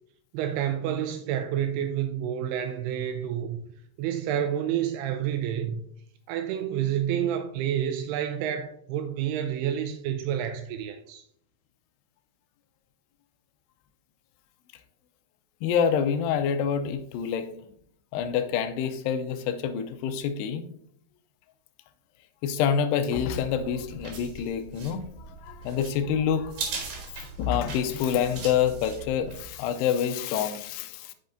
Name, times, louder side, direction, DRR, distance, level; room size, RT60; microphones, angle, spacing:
voice 1, 0.3-3.6 4.0-5.8 6.3-11.2, right 10 dB, 90° right, 2.3 m, -29 dB
voice 2, 15.6-17.5 18.1-20.6 22.4-26.7 27.4-31.1, left 8 dB, 85° left, 2.4 m, -27 dB
sound 1, 23.3-29.5, right 4 dB, 60° right, 2.6 m, -40 dB
8.5 x 5.5 x 2.6 m
omnidirectional pair, 5.1 m